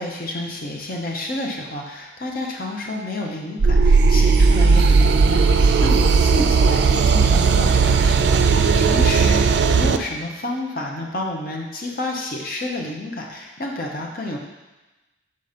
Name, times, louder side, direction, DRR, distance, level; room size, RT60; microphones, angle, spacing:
voice 1, 0.0-14.4, left 1 dB, 45° left, 0 dB, 0.8 m, -30 dB
sound 1, 3.6-10.0, right 4 dB, 60° right, 0.4 m, -16 dB
6.8 x 4.0 x 5.0 m, 1.1 s
head